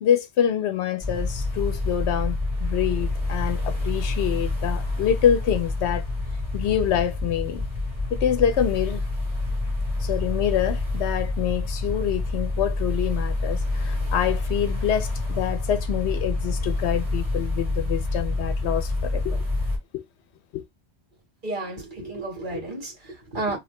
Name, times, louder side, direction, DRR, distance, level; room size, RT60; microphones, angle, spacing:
voice 1, 0.0-6.0 6.5-7.6 8.1-9.0 10.0-19.4 19.9-20.0 20.5-20.6, left 9 dB, 80° left, 0.8 m, -26 dB
sound 1, 1.0-19.8, left 2 dB, 30° right, 1.6 m, -27 dB
voice 2, 21.4-23.6, right 2 dB, 45° right, 1.8 m, -32 dB
2.9 x 2.8 x 3.1 m
omnidirectional pair, 1.1 m